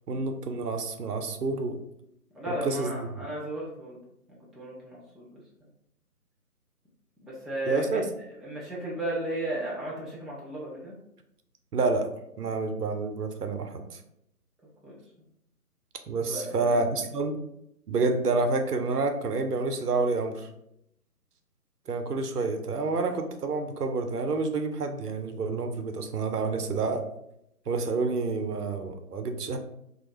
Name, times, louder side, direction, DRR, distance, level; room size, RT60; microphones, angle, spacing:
voice 1, 0.1-1.8 2.5-2.9 7.7-8.0 11.7-12.1 12.4-14.0 16.1-17.4 17.9-20.5 21.9-27.0 27.7-29.6, right 3 dB, 80° right, 6 dB, 0.6 m, -28 dB
voice 2, 2.3-4.0 4.3-5.4 7.2-8.0 8.4-11.0 14.8-15.0 16.3-17.0, right 1 dB, ahead, -6 dB, 0.3 m, -35 dB
2.3 x 2.0 x 3.0 m, 0.78 s
figure-of-eight pair, 150°, 46 cm